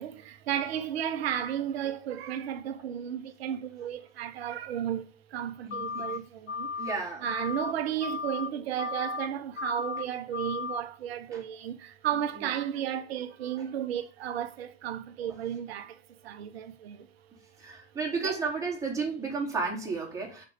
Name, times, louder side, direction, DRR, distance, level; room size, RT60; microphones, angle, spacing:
voice 1, 0.0-6.7 7.2-17.1 18.2-18.4, right 10 dB, 55° right, 1.3 m, -33 dB
voice 2, 5.6-6.2 6.8-7.3 11.3-11.4 12.4-12.5 15.3-15.4 17.6-20.4, right 4 dB, 10° right, 4.0 m, -33 dB
sound 1, 5.7-6.2 6.5-7.0 7.2-7.7 8.0-8.5 8.8-9.3 9.6-10.0 10.3-10.8, left 5 dB, 70° left, 1.0 m, -35 dB
6.5 x 5.8 x 6.8 m
hypercardioid pair, 110°, 36 cm